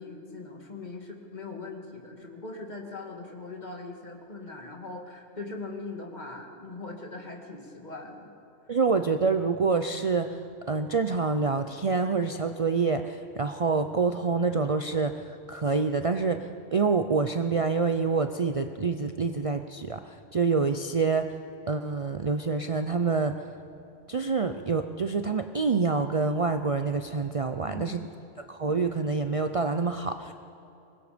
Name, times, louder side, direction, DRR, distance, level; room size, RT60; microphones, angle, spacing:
voice 1, 0.0-8.3 8.6-8.8 27.6-28.1, left 3 dB, 40° left, 1 dB, 2.4 m, -40 dB
voice 2, 8.7-10.4 10.7-21.3 21.7-23.5 24.1-28.0 28.4-30.3, right 4 dB, 40° right, 7 dB, 0.6 m, -27 dB
24.5 x 21.0 x 5.2 m, 2.8 s
omnidirectional pair, 1.2 m